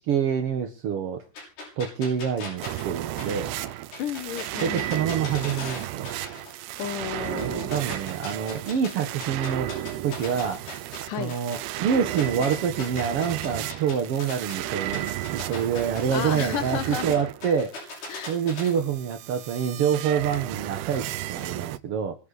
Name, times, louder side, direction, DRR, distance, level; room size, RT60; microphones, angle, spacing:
voice 1, 0.1-1.2 1.8-3.5 4.6-6.1 7.4-9.7 10.0-10.6 11.2-15.1 15.3-17.7 18.3-22.1, right 7 dB, 65° right, 5 dB, 1.5 m, -26 dB
sound 1, 1.4-6.5 6.8-8.9 9.2-14.6 14.9-18.7, left 2 dB, 85° left, 9.0 m, -38 dB
sound 2, 2.6-21.8, right 14 dB, 85° right, 2.8 m, -34 dB
voice 2, 4.0-4.9 6.8-7.7 11.1-11.3 16.1-17.1 18.1-18.3, left 10 dB, 70° left, 11 dB, 2.3 m, -32 dB
24.0 x 8.2 x 4.1 m, 0.36 s
omnidirectional pair, 4.5 m